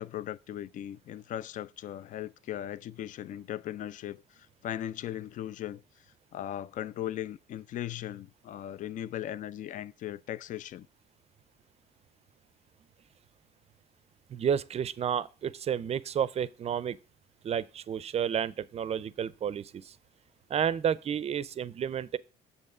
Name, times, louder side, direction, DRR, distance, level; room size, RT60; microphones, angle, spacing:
voice 1, 0.0-5.8 6.3-10.9, left 12 dB, 50° left, 0.4 m, -38 dB
voice 2, 14.3-17.0 17.4-19.9 20.5-22.2, right 8 dB, 40° right, 0.5 m, -31 dB
7.0 x 5.5 x 4.8 m
cardioid pair, 110°, 17 cm